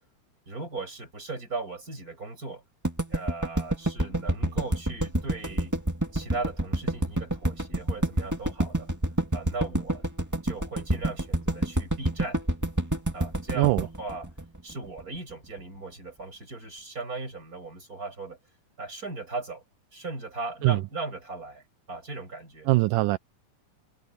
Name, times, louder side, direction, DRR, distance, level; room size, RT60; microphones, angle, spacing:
voice 1, 0.5-2.6 3.1-5.7 6.1-8.9 9.3-10.1 10.4-12.4 13.1-14.3 14.6-18.4 18.8-19.6 19.9-22.7, right 3 dB, 25° right, 8.1 m, -38 dB
sound 1, 2.8-15.0, right 1 dB, 5° right, 1.4 m, -27 dB
voice 2, 13.6-13.9 20.6-20.8 22.7-23.2, right 21 dB, 80° right, 2.1 m, -22 dB
omnidirectional pair, 3.7 m